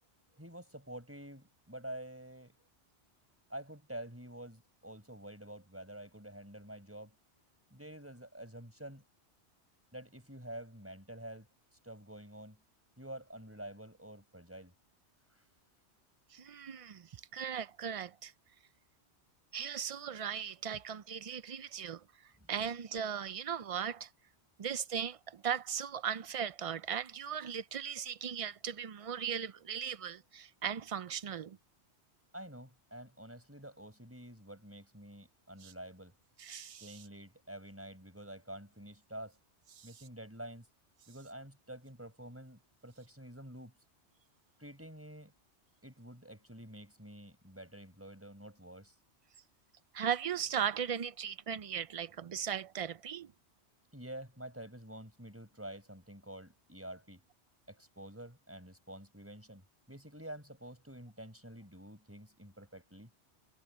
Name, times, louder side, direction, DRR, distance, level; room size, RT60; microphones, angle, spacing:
voice 1, 0.3-2.5 3.5-7.1 7.7-9.0 9.9-11.5 11.8-12.6 13.0-14.7 22.4-22.5 32.3-36.1 36.8-39.4 39.8-40.7 41.1-43.8 44.6-45.3 45.8-48.9 53.9-57.2 57.7-59.6 59.9-63.1, right 1 dB, 10° right, 4.9 m, -48 dB
voice 2, 16.3-18.3 19.5-22.0 22.5-24.1 24.6-31.6 35.6-35.7 36.4-37.0 39.7-39.9 49.9-53.3, right 8 dB, 65° right, 0.3 m, -38 dB
omnidirectional pair, 1.2 m